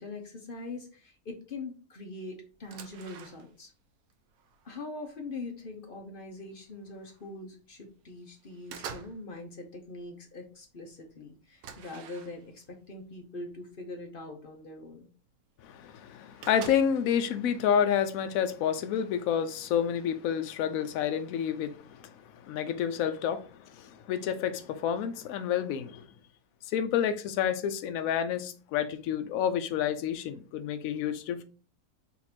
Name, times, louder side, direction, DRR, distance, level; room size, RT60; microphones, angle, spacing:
voice 1, 0.0-3.7 4.6-15.1, left 2 dB, 45° left, 0.8 m, -42 dB
sound 1, 2.5-3.8 4.1-5.3 5.9-6.0 6.4-7.3 7.7-8.1 8.4-9.3 9.6-10.1 10.5-10.6 10.9-11.0 11.6-12.7 13.5-13.6 14.1-14.2 15.3-15.4 15.6-15.7 15.9-17.1, right 7 dB, 75° right, 1.1 m, -47 dB
voice 2, 15.6-26.1 26.7-31.4, left 8 dB, 70° left, 1.0 m, -29 dB
4.1 x 2.6 x 4.2 m
omnidirectional pair, 1.6 m